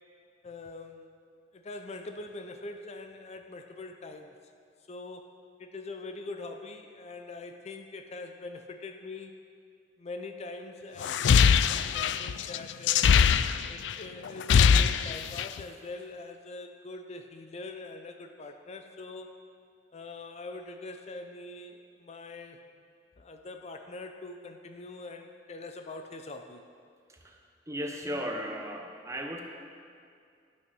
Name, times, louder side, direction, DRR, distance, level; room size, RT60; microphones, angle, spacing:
voice 1, 0.4-1.1 1.5-4.3 4.9-5.3 5.6-9.4 10.0-13.2 13.7-19.3 19.9-22.6 23.2-26.6, left 3 dB, 40° left, 5 dB, 0.5 m, -43 dB
sound 1, 11.0-13.9 14.3-15.6, left 7 dB, 90° left, 0.3 m, -22 dB
voice 2, 27.7-29.4, equal, 15° right, 2 dB, 1.0 m, -36 dB
12.0 x 6.4 x 6.1 m, 2.2 s
head